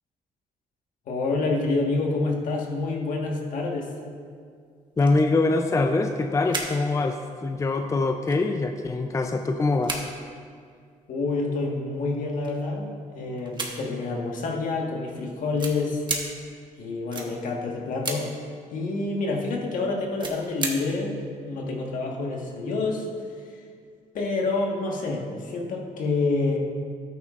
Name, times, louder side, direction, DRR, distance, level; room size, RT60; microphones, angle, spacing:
voice 1, 1.1-3.9 11.1-16.0 16.8-18.3 18.7-21.2 21.4-23.1 24.1-26.6, left 3 dB, 70° left, -1 dB, 1.5 m, -27 dB
sound 1, 4.7-4.8 5.0-5.3 5.6-6.8 7.1-7.3 7.8-7.9 8.3-9.3 9.6-10.7 11.5-11.6 12.1-12.8 13.4-14.1 15.1-15.2 15.6-16.3 17.1-17.3 18.0-18.2 20.1-20.7 21.0-21.1, right 3 dB, 35° right, 1.3 m, -33 dB
voice 2, 5.0-10.1, left 3 dB, 20° left, 6 dB, 0.5 m, -24 dB
13.0 x 9.0 x 2.5 m, 2.1 s
cardioid pair, 100°, 14 cm